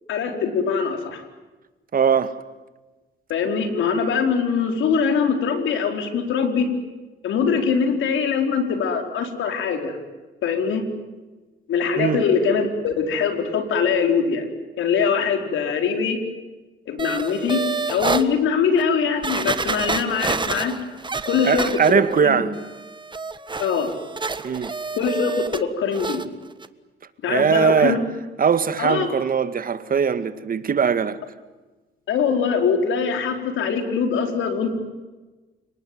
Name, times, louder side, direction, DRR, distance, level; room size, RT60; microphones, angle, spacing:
voice 1, 0.1-1.2 3.3-6.7 7.2-10.0 10.4-10.8 11.7-14.5 14.8-16.2 16.9-17.6 17.9-20.7 21.3-22.4 23.6-23.9 25.0-26.2 27.2-28.0 28.8-29.1 32.1-34.7, left 6 dB, 80° left, 4.7 m, -22 dB
voice 2, 1.9-2.4 12.0-12.2 21.4-22.5 24.4-24.7 27.3-28.0 28.4-31.2, right 6 dB, 45° right, 2.0 m, -20 dB
sound 1, 17.0-18.2 18.8-18.9 19.2-22.2 22.5-25.6 25.9-26.2 26.6-26.7, right 4 dB, 25° right, 1.6 m, -28 dB
30.0 x 19.0 x 9.6 m
cardioid pair, 90°, 20 cm